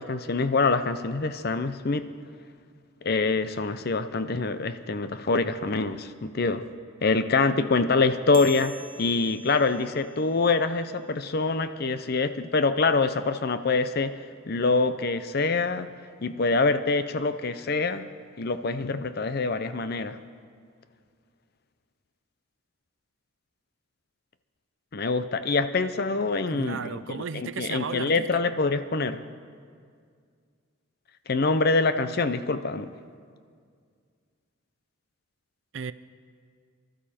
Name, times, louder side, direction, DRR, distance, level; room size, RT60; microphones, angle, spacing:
voice 1, 0.0-2.1 3.0-6.6 7.0-14.1 14.5-15.9 16.2-18.1 18.4-20.2 24.9-29.2 31.3-32.9, left 3 dB, 45° left, 11 dB, 0.6 m, -25 dB
sound 1, 8.3-11.2, right 4 dB, 40° right, 1.1 m, -47 dB
voice 2, 26.5-28.4 35.7-35.9, right 6 dB, 60° right, 14 dB, 0.5 m, -35 dB
24.5 x 12.5 x 4.3 m, 2.1 s
head